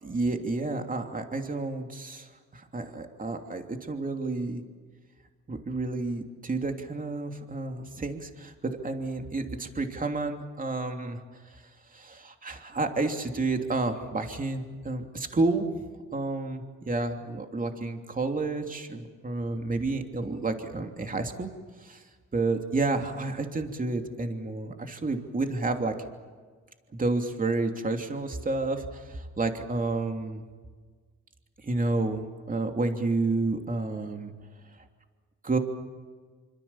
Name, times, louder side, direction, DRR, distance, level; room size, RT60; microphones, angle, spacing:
voice 1, 0.0-2.3 2.5-4.6 5.5-11.2 11.9-15.7 16.1-21.5 21.8-22.0 22.3-25.9 26.9-30.4 31.6-34.3 35.4-35.6, right 3 dB, 25° right, 4 dB, 3.1 m, -30 dB
27.0 x 25.5 x 7.3 m, 1.5 s
cardioid pair, 90°, 30 cm